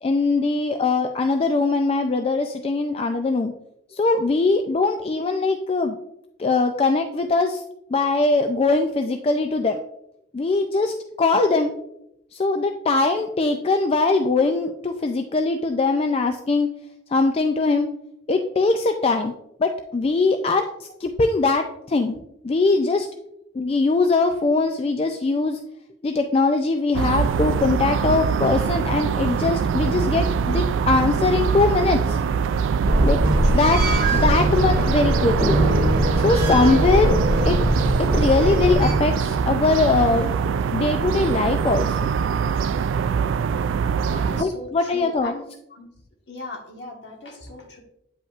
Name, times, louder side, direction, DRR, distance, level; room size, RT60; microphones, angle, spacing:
voice 1, 0.0-3.5 3.9-6.0 6.4-7.6 7.9-9.8 10.3-11.7 12.3-16.7 17.1-17.9 18.3-19.3 19.6-22.2 22.4-23.1 23.5-25.6 26.0-32.2 33.0-33.2 33.5-33.8 34.1-35.6 36.2-37.2 37.4-37.6 38.0-40.3 40.7-42.1 44.4-45.3, left 3 dB, 30° left, 6 dB, 0.3 m, -21 dB
sound 1, 26.9-44.4, right 6 dB, 90° right, 0.3 m, -23 dB
sound 2, 32.8-38.9, right 1 dB, 50° right, 2.1 m, -21 dB
voice 2, 33.4-33.8 34.1-34.8 36.7-37.3 44.1-45.4 45.7-45.9 46.3-47.8, left 2 dB, 65° left, 0 dB, 1.5 m, -39 dB
8.7 x 5.2 x 2.4 m, 0.82 s
head